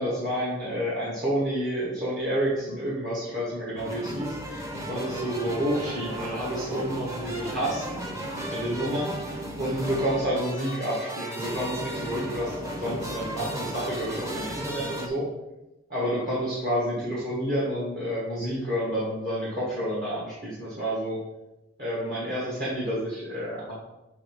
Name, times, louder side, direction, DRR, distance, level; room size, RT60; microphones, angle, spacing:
voice 1, 0.0-4.6 4.9-8.0 8.5-15.3 15.9-21.2 21.8-23.7, equal, 45° right, -7 dB, 1.6 m, -29 dB
sound 1, 3.8-15.1, right 1 dB, 15° right, 0.8 m, -35 dB
6.9 x 3.2 x 6.0 m, 0.97 s
head